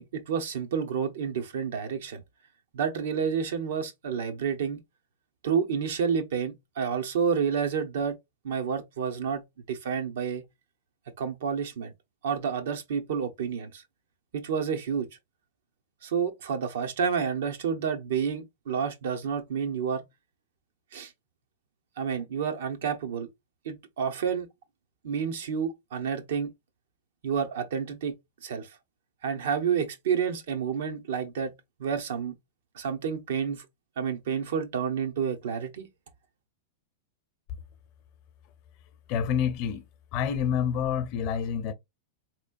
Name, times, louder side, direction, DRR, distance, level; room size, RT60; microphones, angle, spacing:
voice 1, 0.0-2.2 2.7-4.8 5.4-8.2 8.4-9.4 9.7-10.4 11.2-11.9 12.2-13.8 14.3-15.1 16.0-20.0 20.9-21.1 22.0-23.3 23.6-24.5 25.0-26.5 27.2-28.1 28.4-28.8 29.2-31.5 31.8-32.3 32.7-33.6 34.0-35.9, right 7 dB, 75° right, 1.0 m, -29 dB
voice 2, 39.1-39.8 40.1-41.7, left 8 dB, 45° left, 0.7 m, -27 dB
3.8 x 3.1 x 2.5 m
hypercardioid pair, 130°, 0 cm